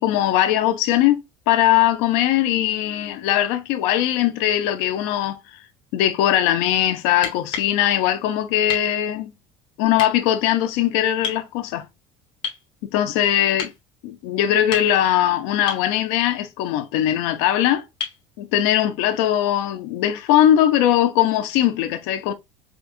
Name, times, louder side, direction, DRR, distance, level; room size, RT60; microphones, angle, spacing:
voice 1, 0.0-5.4 5.9-9.3 9.8-11.8 12.9-13.7 14.0-17.8 18.4-22.3, left 12 dB, 85° left, 0.7 m, -20 dB
sound 1, 7.1-7.7 8.7-8.9 9.9-10.1 11.2-11.4 12.4-12.7 13.6-13.8 14.5-15.1 15.7-15.9 18.0-18.2 20.1-20.2, left 6 dB, 40° left, 1.2 m, -31 dB
5.1 x 2.4 x 2.5 m
cardioid pair, 145°, 13 cm